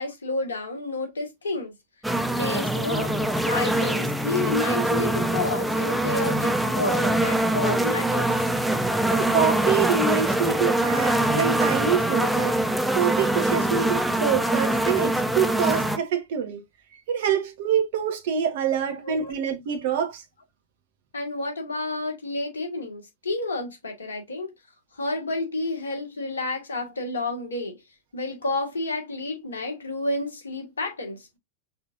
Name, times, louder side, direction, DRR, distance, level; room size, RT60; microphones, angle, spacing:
voice 1, 0.0-1.7 2.0-2.1 2.4-8.5 19.0-19.4 21.1-24.5 24.9-27.8 28.1-31.3, left 2 dB, 70° left, 1.7 m, -30 dB
sound 1, 2.0-16.0, right 1 dB, 5° right, 0.7 m, -24 dB
voice 2, 9.1-12.6 12.9-16.6 17.1-20.2, right 7 dB, 55° right, 1.3 m, -26 dB
5.6 x 3.7 x 2.5 m
figure-of-eight pair, 90°, 0 cm